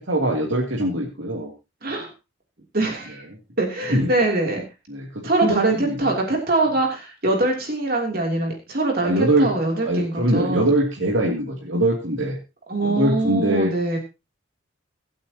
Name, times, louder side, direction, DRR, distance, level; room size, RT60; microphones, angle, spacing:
voice 1, 0.1-1.5 3.9-4.1 4.9-6.1 9.0-9.5 9.8-12.4 12.8-13.7, right 1 dB, 80° right, -2 dB, 2.9 m, -22 dB
voice 2, 2.7-3.2 3.6-4.6 5.2-10.7 12.7-14.0, right 2 dB, 50° right, 1 dB, 3.0 m, -23 dB
24.0 x 8.7 x 2.9 m, 0.28 s
head